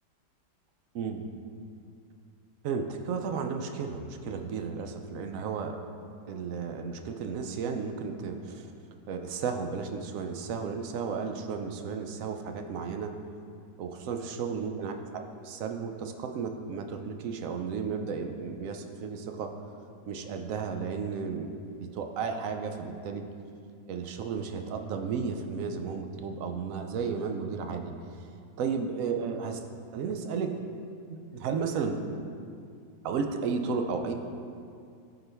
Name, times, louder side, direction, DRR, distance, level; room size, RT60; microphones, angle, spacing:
voice 1, 2.6-5.8 6.3-8.7 9.1-13.1 13.8-19.5 20.1-23.3 23.9-27.9 28.6-29.6 29.9-30.5 31.1-32.0 33.0-34.1, right 5 dB, 70° right, 5 dB, 0.8 m, -33 dB
13.0 x 4.5 x 3.4 m, 2.4 s
omnidirectional pair, 1.9 m